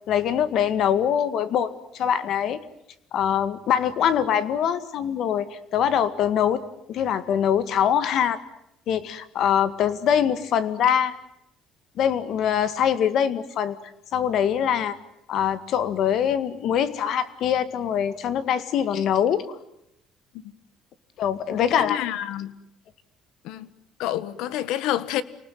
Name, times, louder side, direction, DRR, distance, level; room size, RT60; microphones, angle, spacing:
voice 1, 0.1-2.6 3.1-6.6 6.9-8.4 8.9-11.2 12.0-13.8 14.1-15.0 15.3-19.6 21.2-22.1, left 9 dB, 55° left, 1.9 m, -23 dB
voice 2, 21.5-22.5 23.4-23.7 24.0-25.2, left 12 dB, 80° left, 1.5 m, -28 dB
29.5 x 19.5 x 9.3 m
cardioid pair, 150°, 0 cm